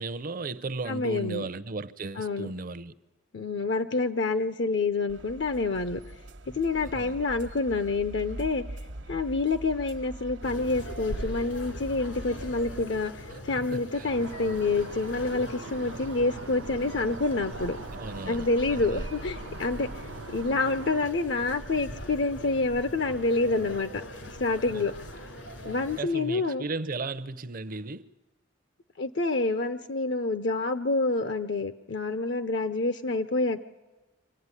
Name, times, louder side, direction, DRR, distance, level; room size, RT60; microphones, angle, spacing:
voice 1, 0.0-2.9 6.8-7.2 13.3-14.1 17.9-19.1 24.7-24.8 25.9-28.1, right 3 dB, 45° right, 0.6 m, -36 dB
voice 2, 0.9-1.5 2.2-2.5 3.3-6.0 6.5-8.6 9.1-13.1 13.5-17.8 18.3-19.9 20.3-24.9 25.6-26.6 29.0-33.6, left 3 dB, 65° left, 0.7 m, -27 dB
sound 1, 5.1-12.8, right 1 dB, 70° right, 1.1 m, -42 dB
sound 2, 10.4-26.0, equal, 80° left, 2.9 m, -41 dB
sound 3, 14.1-21.1, right 4 dB, 85° right, 0.6 m, -43 dB
25.5 x 15.5 x 9.7 m
head